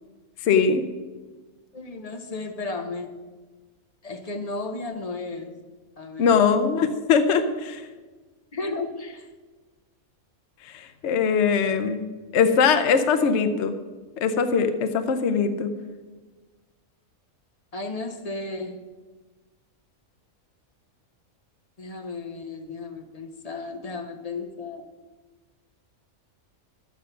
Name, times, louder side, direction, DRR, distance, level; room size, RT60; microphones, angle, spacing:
voice 1, 0.4-0.8 6.2-7.8 10.7-12.0 12.3-13.7 14.2-15.7, left 6 dB, 60° left, 8 dB, 1.0 m, -21 dB
voice 2, 1.7-3.3 4.0-5.6 6.0-6.5 8.5-9.3 13.2-13.3 17.7-18.9 21.8-24.9, left 3 dB, 30° left, 5 dB, 0.9 m, -34 dB
11.5 x 8.5 x 5.7 m, 1.3 s
omnidirectional pair, 1.5 m